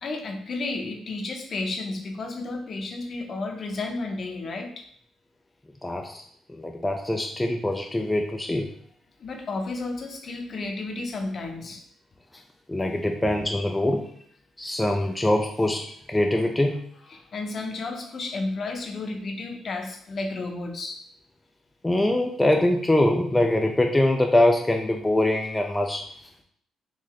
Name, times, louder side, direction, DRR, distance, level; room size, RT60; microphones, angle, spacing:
voice 1, 0.0-4.7 9.2-11.8 17.1-21.0, left 3 dB, 50° left, 3 dB, 0.7 m, -32 dB
voice 2, 5.8-6.2 6.5-8.7 12.7-14.0 14.6-16.8 21.8-26.1, left 1 dB, 10° left, 3 dB, 0.3 m, -23 dB
3.8 x 2.7 x 3.1 m, 0.63 s
cardioid pair, 90°, 0 cm